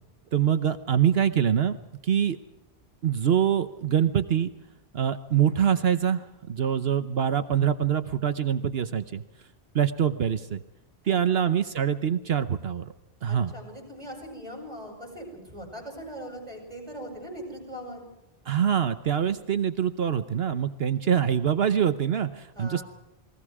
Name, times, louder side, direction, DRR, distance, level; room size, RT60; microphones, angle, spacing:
voice 1, 0.3-1.8 2.0-2.4 3.0-4.5 4.9-9.2 9.7-10.6 11.0-12.9 13.2-13.5 18.5-22.8, right 9 dB, 70° right, 10 dB, 1.1 m, -24 dB
voice 2, 11.0-11.6 13.3-18.0 22.5-22.8, equal, 40° right, 2 dB, 8.1 m, -40 dB
29.0 x 21.5 x 4.9 m, 0.94 s
omnidirectional pair, 1.1 m